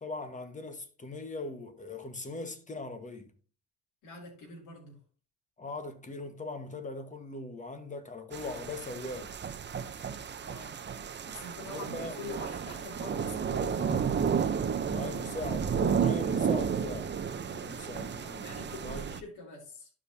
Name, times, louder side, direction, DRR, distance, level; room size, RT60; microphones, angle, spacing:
voice 1, 0.0-3.3 5.6-9.3 11.6-12.1 14.8-17.1 17.5-19.1, left 3 dB, 25° left, 1.3 m, -40 dB
voice 2, 4.0-5.0 10.4-10.8 11.2-14.1 18.4-19.9, left 2 dB, 80° left, 2.5 m, -45 dB
sound 1, 8.3-19.2, right 7 dB, 35° right, 0.7 m, -32 dB
12.0 x 5.1 x 2.7 m
cardioid pair, 90°, 30 cm